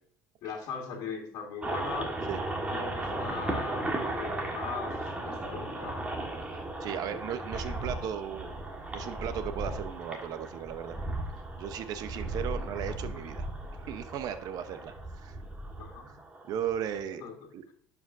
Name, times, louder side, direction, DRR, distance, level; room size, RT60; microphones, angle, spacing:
voice 1, 0.4-2.1 2.7-6.0 15.8-16.1 17.2-17.5, left 6 dB, 70° left, -1 dB, 1.7 m, -39 dB
sound 1, 1.6-17.0, right 2 dB, 20° right, 1.5 m, -36 dB
voice 2, 6.8-8.5 8.9-11.0 11.6-13.5 13.9-15.4 16.5-17.2 17.5-17.7, right 9 dB, 65° right, 10 dB, 0.9 m, -36 dB
11.5 x 5.0 x 2.6 m, 0.62 s
supercardioid pair, 100°, 7 cm